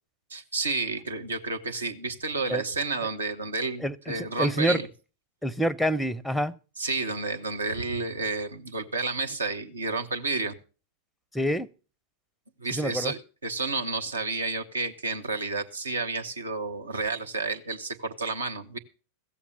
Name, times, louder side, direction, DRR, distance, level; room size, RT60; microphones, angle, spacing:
voice 1, 0.3-4.9 6.8-10.5 12.6-18.8, right 3 dB, 75° right, 1.1 m, -31 dB
voice 2, 3.8-4.8 5.4-6.5 11.3-11.7 12.7-13.1, equal, 5° left, 0.6 m, -27 dB
15.5 x 7.2 x 6.8 m
figure-of-eight pair, 90°, 0 cm